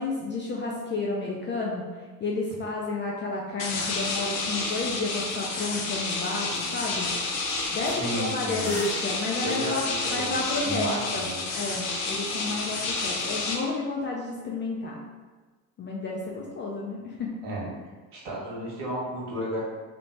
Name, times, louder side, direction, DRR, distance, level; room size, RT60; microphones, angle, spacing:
voice 1, 0.0-1.8 2.2-7.1 7.7-11.3 11.5-15.0 15.8-17.3, left 3 dB, 25° left, -3 dB, 0.3 m, -31 dB
sound 1, 3.6-13.6, left 3 dB, 75° left, 0.7 m, -30 dB
sound 2, 6.0-6.1 6.4-6.7 7.0-11.8, equal, 15° right, 0.7 m, -43 dB
voice 2, 7.9-8.7 9.4-10.3 10.6-11.4 17.4-17.7 18.1-19.6, equal, 55° right, -5 dB, 1.3 m, -32 dB
3.1 x 2.1 x 2.7 m, 1.3 s
hypercardioid pair, 75°, 47 cm